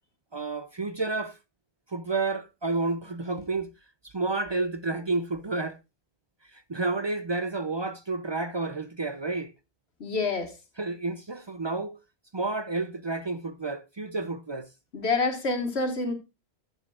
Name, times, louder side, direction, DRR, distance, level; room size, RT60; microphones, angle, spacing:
voice 1, 0.3-1.4 1.9-3.7 4.0-5.8 6.5-9.5 10.8-12.0 12.3-14.7, right 3 dB, 40° right, 0.4 m, -30 dB
voice 2, 10.0-10.6 14.9-16.1, left 3 dB, 75° left, 1.8 m, -27 dB
13.0 x 8.0 x 2.4 m
omnidirectional pair, 1.1 m